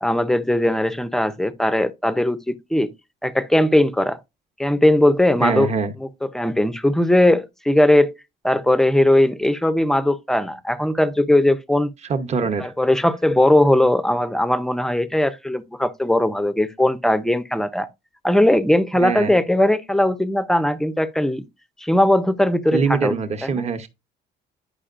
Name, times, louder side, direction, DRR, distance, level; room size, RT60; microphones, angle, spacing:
voice 1, 0.0-2.9 3.2-4.2 4.6-5.7 6.0-8.1 8.4-11.9 12.6-17.9 18.2-21.4 21.8-23.1 23.4-23.7, left 1 dB, ahead, 0.5 m, -19 dB
voice 2, 5.4-5.9 12.1-12.7 18.9-19.4 22.7-23.9, right 5 dB, 35° right, 0.9 m, -23 dB
9.9 x 5.3 x 2.5 m
cardioid pair, 135°, 18 cm